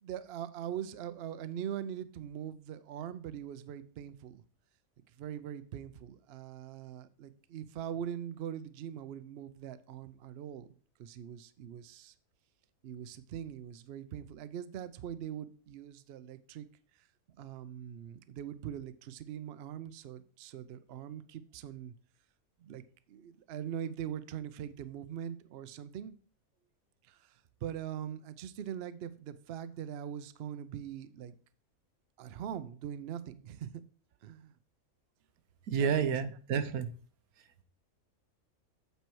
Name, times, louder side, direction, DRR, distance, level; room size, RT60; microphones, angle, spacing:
voice 1, 0.0-4.4 5.2-12.1 12.8-16.7 17.0-17.1 17.4-21.9 22.6-22.8 23.1-26.2 27.0-31.4 32.2-33.7 34.2-34.5 35.7-36.1, right 9 dB, 60° right, 13 dB, 0.7 m, -42 dB
voice 2, 35.7-36.9, right 7 dB, 85° right, 10 dB, 1.2 m, -30 dB
8.2 x 4.5 x 4.6 m, 0.43 s
omnidirectional pair, 1.5 m